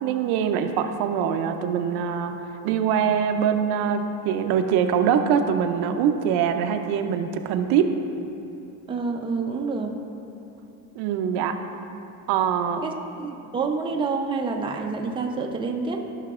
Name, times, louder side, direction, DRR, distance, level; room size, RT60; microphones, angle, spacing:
voice 1, 0.0-2.3 2.6-7.9 11.0-11.5 12.3-12.8, right 8 dB, 75° right, 6 dB, 0.7 m, -23 dB
voice 2, 8.9-9.9 12.8-16.0, right 4 dB, 15° right, 1 dB, 0.5 m, -28 dB
14.5 x 5.8 x 2.4 m, 2.9 s
cardioid pair, 125°, 39 cm